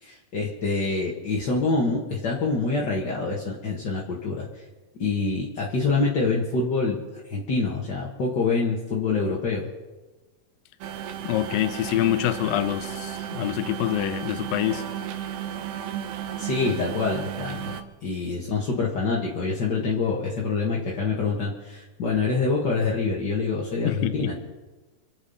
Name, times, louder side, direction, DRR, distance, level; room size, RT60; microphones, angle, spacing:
voice 1, 0.0-4.5 5.0-7.0 7.3-9.7 16.4-24.3, left 4 dB, 45° left, -3 dB, 1.5 m, -26 dB
sound 1, 10.8-17.8, right 10 dB, 80° right, 2.7 m, -34 dB
voice 2, 11.2-14.9 23.8-24.3, left 14 dB, 75° left, 11 dB, 2.5 m, -26 dB
26.0 x 8.7 x 5.6 m, 1.2 s
omnidirectional pair, 4.3 m